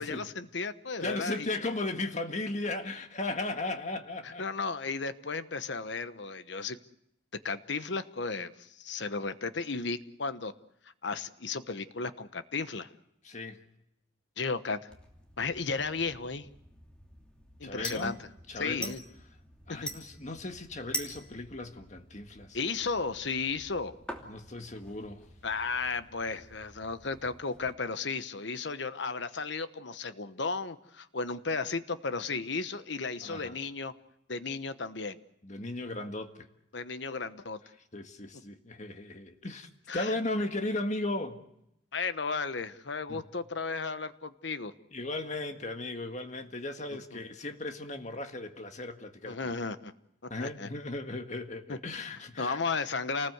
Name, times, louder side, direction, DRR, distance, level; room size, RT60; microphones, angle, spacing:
voice 1, 0.0-1.5 4.2-6.8 7.4-10.5 11.0-12.9 14.4-14.9 15.4-16.5 17.6-18.3 18.6-19.0 19.8-19.9 22.5-23.9 25.4-33.9 34.3-35.2 36.7-37.6 39.9-40.2 41.9-44.7 47.1-47.2 49.2-49.9 50.4-50.7 51.7-51.8 52.4-53.3, left 4 dB, 65° left, 1.1 m, -34 dB
voice 2, 1.0-4.4 13.2-13.6 17.6-18.1 18.5-18.9 19.7-22.6 24.3-25.2 33.2-33.6 35.4-36.5 37.9-41.4 43.1-43.2 44.9-49.5 50.3-52.6, left 2 dB, 40° left, 1.8 m, -36 dB
sound 1, 14.9-27.7, equal, 5° left, 2.8 m, -46 dB
28.5 x 19.5 x 8.0 m
head